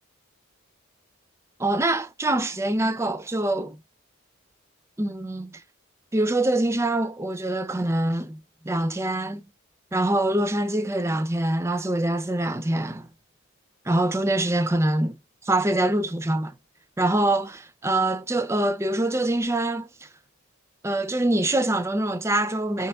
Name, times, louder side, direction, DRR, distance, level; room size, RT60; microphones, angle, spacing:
voice 1, 1.6-3.8 5.0-5.6 6.1-8.4 8.6-9.4 9.9-13.1 13.9-16.5 17.0-20.1 20.8-22.9, right 1 dB, 10° right, 0.4 m, -24 dB
4.3 x 2.9 x 2.2 m
head